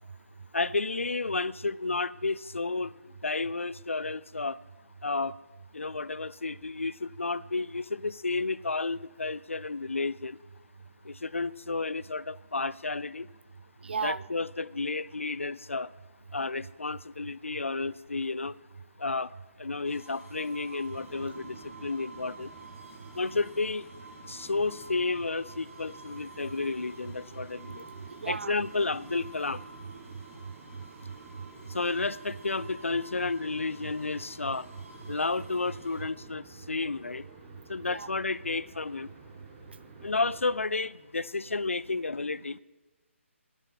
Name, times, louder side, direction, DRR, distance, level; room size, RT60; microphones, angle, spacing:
voice 1, 0.5-2.9 3.2-4.6 5.0-5.3 5.7-10.4 11.1-13.3 14.0-15.9 16.3-18.5 19.0-19.3 19.6-22.5 23.2-23.9 24.3-27.8 28.3-29.6 31.7-34.7 35.1-37.2 37.7-39.1 40.0-42.6, left 3 dB, 70° left, 0.5 m, -31 dB
voice 2, 13.8-14.3 16.3-16.4 20.9-21.3 26.4-26.5 27.4-28.6 29.8-31.8 33.8-33.9 34.3-35.2 36.0-36.1 37.5-38.1 41.9-42.0 42.5-42.6, right 5 dB, 50° right, 0.4 m, -40 dB
sound 1, 19.8-36.0, right 2 dB, 80° right, 4.6 m, -51 dB
sound 2, 20.9-40.7, right 4 dB, 30° right, 1.8 m, -51 dB
10.5 x 8.7 x 9.8 m
figure-of-eight pair, 145°, 7 cm